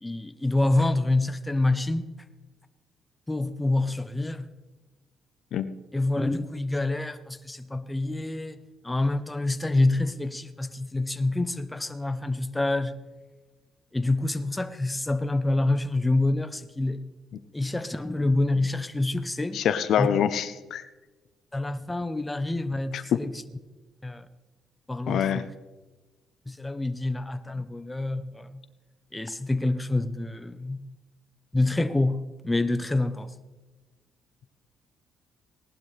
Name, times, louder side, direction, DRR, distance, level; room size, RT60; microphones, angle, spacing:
voice 1, 0.0-2.1 3.3-4.5 5.9-8.6 8.8-13.0 13.9-17.0 17.5-19.7 20.0-20.2 21.5-23.3 24.0-24.3 24.9-25.5 26.5-28.6 29.1-30.8 31.5-33.3, left 2 dB, 10° left, 0.8 m, -27 dB
voice 2, 19.5-20.8 22.9-23.2 25.1-25.4, left 9 dB, 70° left, 0.7 m, -25 dB
18.0 x 11.5 x 3.3 m
cardioid pair, 90°, 0 cm